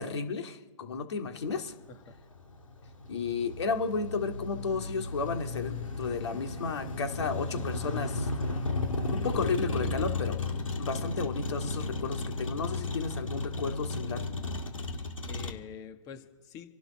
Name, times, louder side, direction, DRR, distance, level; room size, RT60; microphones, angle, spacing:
voice 1, 0.0-1.7 3.1-8.3 9.1-10.4 10.8-14.2, left 5 dB, 55° left, 5 dB, 2.2 m, -33 dB
Motor vehicle (road), 1.5-15.5, left 2 dB, 80° left, 2.2 m, -34 dB
voice 2, 14.9-16.7, left 6 dB, 20° left, 8 dB, 1.5 m, -46 dB
28.0 x 12.0 x 4.2 m, 1.1 s
figure-of-eight pair, 135°, 17 cm